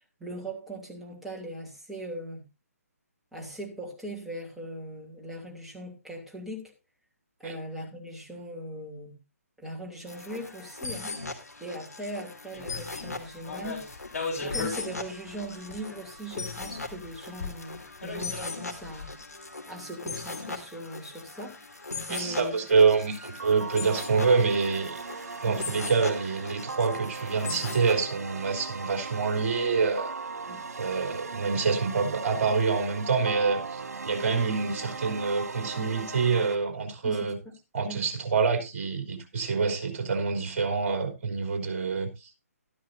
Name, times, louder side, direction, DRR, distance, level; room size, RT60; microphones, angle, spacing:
voice 1, 0.2-2.5 3.3-6.7 7.4-9.2 9.6-11.1 11.6-13.9 14.3-19.1 19.7-21.6 22.1-22.6 25.4-25.7 30.5-30.6 37.0-37.3 37.9-38.0, right 1 dB, 5° right, 2.9 m, -40 dB
sound 1, 10.1-27.9, left 3 dB, 85° left, 3.0 m, -39 dB
sound 2, 12.5-13.0 13.4-15.0 15.3-16.1 16.6-19.1, left 3 dB, 60° left, 6.6 m, -37 dB
voice 2, 22.1-25.0 25.4-30.1 30.8-37.4 37.7-42.3, right 5 dB, 45° right, 3.5 m, -26 dB
sound 3, 23.4-36.5, right 4 dB, 70° right, 2.0 m, -38 dB
13.0 x 13.0 x 2.7 m
figure-of-eight pair, 140°, 9 cm